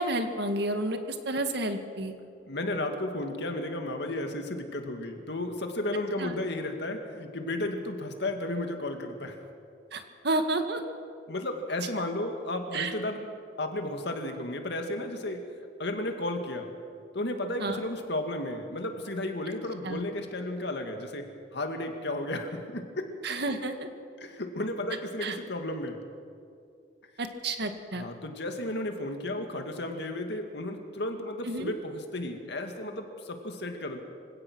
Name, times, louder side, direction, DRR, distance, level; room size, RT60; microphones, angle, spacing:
voice 1, 0.0-2.1 6.2-6.4 9.9-10.8 12.7-12.9 17.6-17.8 19.8-20.0 23.2-23.9 25.2-25.4 27.2-28.1 31.5-31.7, right 2 dB, 65° right, 7 dB, 1.9 m, -30 dB
voice 2, 2.5-9.4 11.3-13.3 13.6-15.5 15.8-16.7 17.1-23.1 24.2-26.0 27.9-34.0, left 1 dB, 65° left, 5 dB, 2.3 m, -33 dB
25.5 x 17.0 x 6.3 m, 2.4 s
head